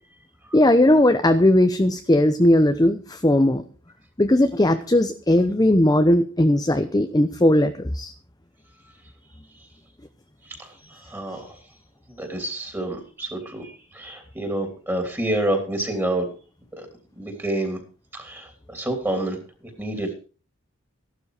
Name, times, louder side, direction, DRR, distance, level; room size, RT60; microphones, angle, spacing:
voice 1, 0.5-3.6 4.2-8.1, left 1 dB, 20° left, 8 dB, 0.8 m, -18 dB
voice 2, 10.6-11.6 12.1-16.3 16.8-16.9 17.2-17.8 18.1-19.4 19.8-20.1, right 1 dB, 10° right, 4 dB, 3.3 m, -28 dB
15.0 x 12.0 x 5.0 m, 0.37 s
head